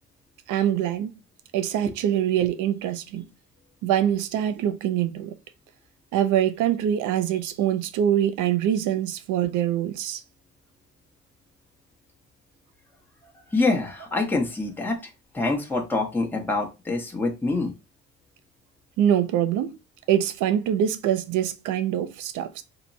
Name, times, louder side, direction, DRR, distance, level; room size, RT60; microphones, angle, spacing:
voice 1, 0.5-1.1 1.5-3.2 3.8-5.3 6.1-10.2 19.0-19.7 20.1-22.6, right 10 dB, 90° right, 0.5 m, -24 dB
voice 2, 13.5-15.0 15.3-17.7, left 3 dB, 5° left, 0.8 m, -25 dB
2.9 x 2.1 x 3.9 m
cardioid pair, 90°, 30 cm